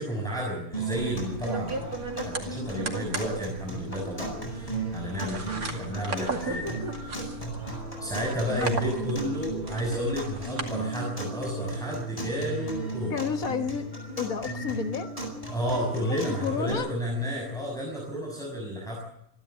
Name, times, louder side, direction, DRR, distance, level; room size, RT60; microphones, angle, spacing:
voice 1, 0.0-7.2 8.0-13.1 15.5-19.0, equal, ahead, -2 dB, 6.0 m, -32 dB
sound 1, 0.7-16.7, right 2 dB, 25° left, 8.0 m, -36 dB
sound 2, 1.0-10.7, right 3 dB, 85° right, 2.9 m, -37 dB
voice 2, 8.4-9.1 10.3-10.4 13.1-13.9 14.2-15.1 16.0-16.9, left 6 dB, 75° left, 7 dB, 2.1 m, -31 dB
27.5 x 12.0 x 8.9 m, 0.77 s
omnidirectional pair, 1.5 m